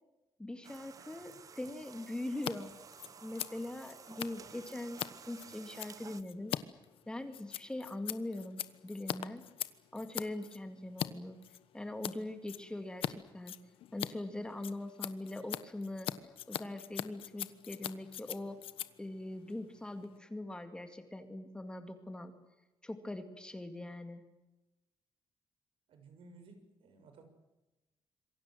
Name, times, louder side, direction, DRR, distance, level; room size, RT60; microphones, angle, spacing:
voice 1, 0.4-2.7 3.2-6.6 7.1-9.4 9.9-11.4 11.7-13.6 13.9-16.1 16.5-18.6 19.0-22.3 22.8-24.2, left 1 dB, 10° left, 7 dB, 2.2 m, -42 dB
sound 1, 0.6-6.2, right 6 dB, 40° right, 1.0 m, -53 dB
Scissors, 2.3-2.5 2.8-11.1 11.4-12.2 12.5-13.1 13.4-20.2, left 11 dB, 85° left, 1.3 m, -42 dB
voice 2, 25.9-27.2, right 3 dB, 75° right, 7 dB, 6.6 m, -57 dB
27.0 x 23.0 x 7.7 m, 1.0 s
wide cardioid pair, 165°, 9 cm